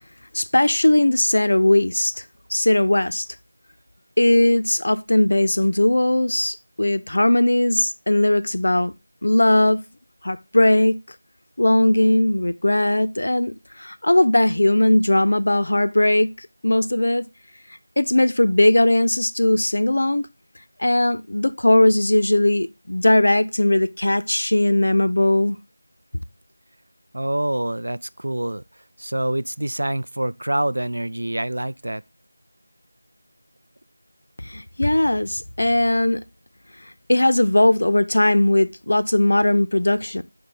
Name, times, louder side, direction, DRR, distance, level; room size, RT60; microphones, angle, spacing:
voice 1, 0.3-2.2 2.5-3.3 4.2-8.9 9.2-9.8 10.2-11.0 11.6-17.3 18.0-20.3 20.8-25.6 34.4-36.2 37.1-40.2, left 1 dB, 50° left, 0.5 m, -19 dB
voice 2, 27.1-32.0, right 1 dB, 65° right, 0.4 m, -26 dB
6.2 x 4.4 x 3.7 m
figure-of-eight pair, 180°, 0 cm